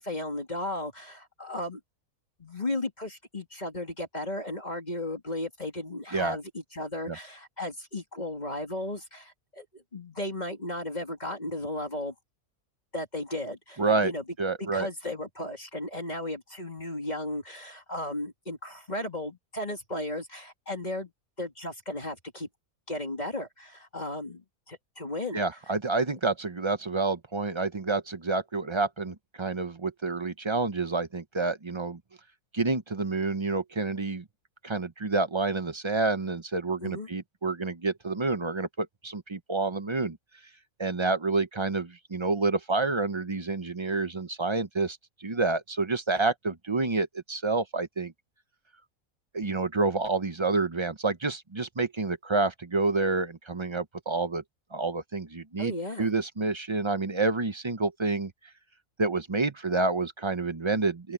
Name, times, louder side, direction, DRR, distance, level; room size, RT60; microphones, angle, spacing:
voice 1, 0.0-1.8 2.4-12.1 12.9-14.2 14.6-21.1 21.4-22.5 22.9-25.5 36.8-37.1 55.6-56.1, left 1 dB, 30° left, 2.6 m, -35 dB
voice 2, 13.8-14.1 14.4-14.9 25.3-32.0 32.5-34.2 34.6-40.2 40.8-48.1 49.3-54.4 54.7-55.7 56.0-58.3 59.0-61.1, right 3 dB, 25° right, 0.6 m, -28 dB
open air
omnidirectional pair, 1.5 m